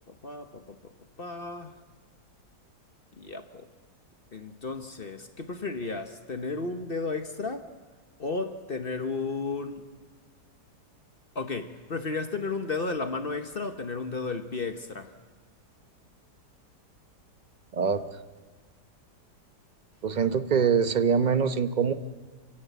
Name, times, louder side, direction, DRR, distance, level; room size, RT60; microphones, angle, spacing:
voice 1, 0.1-1.8 3.2-3.7 4.3-7.7 8.2-9.9 11.3-15.1, left 3 dB, 40° left, 7 dB, 1.1 m, -33 dB
voice 2, 20.0-21.9, right 6 dB, 35° right, 10 dB, 0.8 m, -24 dB
28.0 x 16.5 x 8.2 m, 1.5 s
omnidirectional pair, 1.8 m